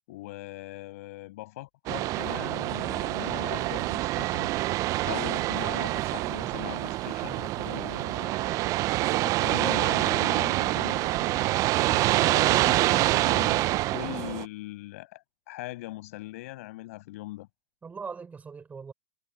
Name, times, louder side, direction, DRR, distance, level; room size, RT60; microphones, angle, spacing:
voice 1, 0.1-4.5 5.0-8.8 9.2-11.4 11.7-17.5, left 18 dB, 55° left, 6.6 m, -40 dB
sound 1, 1.9-14.4, right 18 dB, 35° right, 0.7 m, -26 dB
voice 2, 9.3-10.0 17.8-18.9, right 5 dB, 15° right, 4.3 m, -39 dB
hypercardioid pair, 105°, 9 cm